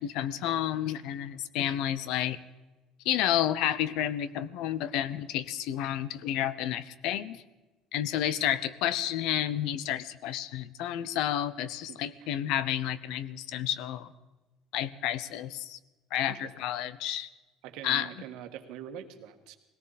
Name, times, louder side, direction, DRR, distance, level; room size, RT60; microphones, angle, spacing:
voice 1, 0.0-2.4 3.1-7.4 7.9-14.1 14.7-15.8 16.1-17.3 17.8-18.1, left 11 dB, 70° left, 17 dB, 0.8 m, -30 dB
voice 2, 8.2-8.6 11.9-12.3 16.3-16.5 17.6-19.6, right 10 dB, 75° right, 7 dB, 1.6 m, -44 dB
19.5 x 18.0 x 4.1 m, 1.1 s
cardioid pair, 145°, 0 cm